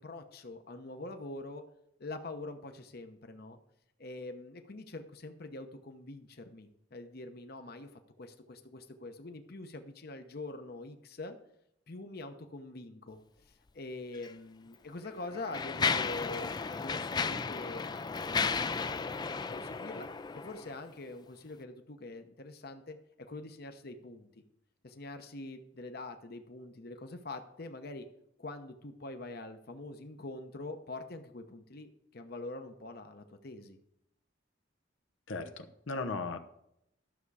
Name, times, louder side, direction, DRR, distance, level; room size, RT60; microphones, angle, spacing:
voice 1, 0.0-1.6 2.0-3.6 4.0-7.9 8.2-11.4 11.9-13.2 13.7-17.9 18.4-19.1 19.5-24.4 24.8-28.1 28.4-33.8, left 2 dB, 55° left, 7 dB, 0.9 m, -44 dB
Mechanisms, 14.1-14.3 15.0-20.8, left 5 dB, 20° left, 0.3 m, -34 dB
voice 2, 35.3-36.4, left 3 dB, 90° left, 7 dB, 0.9 m, -37 dB
12.5 x 7.0 x 4.8 m, 0.78 s
head